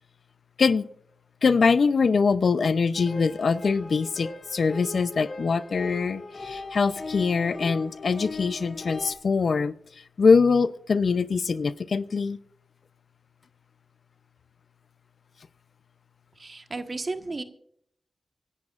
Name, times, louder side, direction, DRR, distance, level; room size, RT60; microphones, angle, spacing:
voice 1, 1.4-9.7 10.2-12.4, left 5 dB, 70° left, 14 dB, 0.6 m, -23 dB
sound 1, 2.9-9.2, left 3 dB, 55° left, 2.0 m, -39 dB
voice 2, 16.4-17.4, right 3 dB, 50° right, 7 dB, 1.4 m, -33 dB
25.0 x 11.0 x 2.5 m, 0.65 s
cardioid pair, 45°, 0 cm